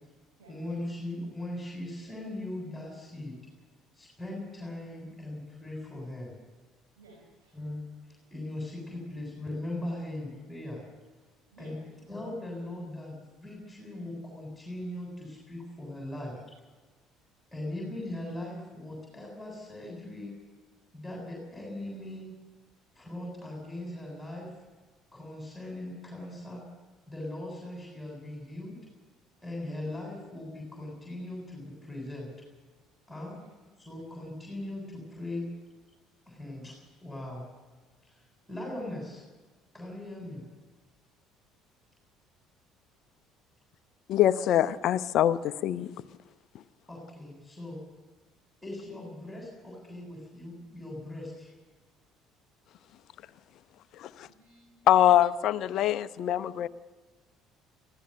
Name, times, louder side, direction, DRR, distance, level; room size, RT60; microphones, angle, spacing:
voice 1, 0.5-3.4 3.9-6.3 7.5-7.9 8.3-10.8 11.6-11.8 12.1-16.6 17.5-20.3 20.9-22.3 22.9-24.5 25.1-26.6 27.1-28.8 29.4-32.3 33.1-33.4 33.9-35.4 36.3-37.5 38.0-38.2 38.5-39.3 39.7-40.4 46.9-47.8 48.6-51.6, left 1 dB, 5° left, -2 dB, 7.6 m, -39 dB
voice 2, 7.0-7.5 11.5-11.8 54.2-55.0, right 1 dB, 75° right, -2 dB, 5.6 m, -56 dB
voice 3, 44.1-45.9 54.0-54.3 54.9-56.7, left 12 dB, 55° left, 15 dB, 0.8 m, -24 dB
25.5 x 15.5 x 6.8 m, 1.3 s
figure-of-eight pair, 55°, 0 cm